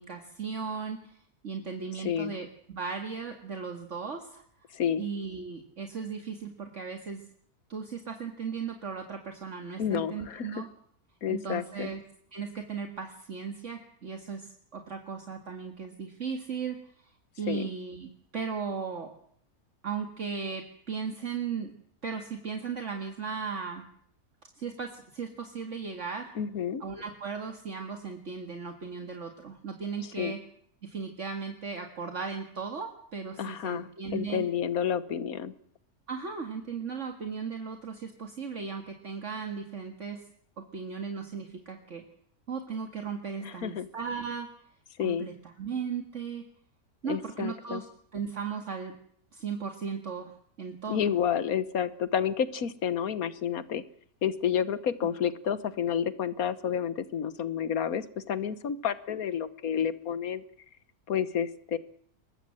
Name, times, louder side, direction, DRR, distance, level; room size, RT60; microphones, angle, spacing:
voice 1, 0.0-4.4 5.0-7.2 7.7-10.7 11.3-12.0 12.3-16.8 17.4-19.1 19.8-21.7 22.0-23.8 24.6-26.3 26.8-30.4 30.8-34.5 36.1-40.2 40.6-42.0 42.5-44.5 45.0-46.4 47.0-47.9 48.1-48.9 49.3-50.3 50.6-51.1, right 5 dB, 55° right, 5 dB, 2.3 m, -36 dB
voice 2, 2.0-2.3 4.7-5.1 9.8-10.6 11.2-11.9 17.5-17.7 26.4-26.8 30.2-30.4 33.4-35.5 43.4-43.9 45.0-45.3 47.0-47.8 50.9-53.8 54.2-60.4 61.1-61.8, left 8 dB, 75° left, 15 dB, 1.6 m, -30 dB
22.5 x 20.5 x 7.8 m, 0.63 s
omnidirectional pair, 1.6 m